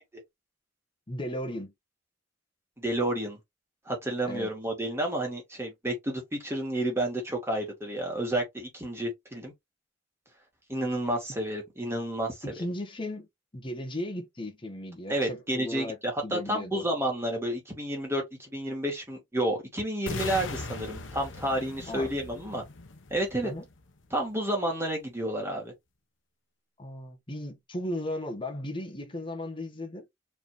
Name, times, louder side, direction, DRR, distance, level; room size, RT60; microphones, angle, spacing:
voice 1, 1.1-1.7 4.3-4.5 12.4-13.3 13.5-16.8 21.9-22.1 23.4-23.7 26.8-30.1, left 1 dB, 25° left, 1.3 m, -36 dB
voice 2, 2.8-3.4 3.9-9.5 10.7-12.5 15.1-22.6 23.1-23.5 24.1-25.7, right 1 dB, 15° right, 2.2 m, -30 dB
sound 1, 20.1-24.1, left 3 dB, 90° left, 0.9 m, -40 dB
4.6 x 3.6 x 3.1 m
head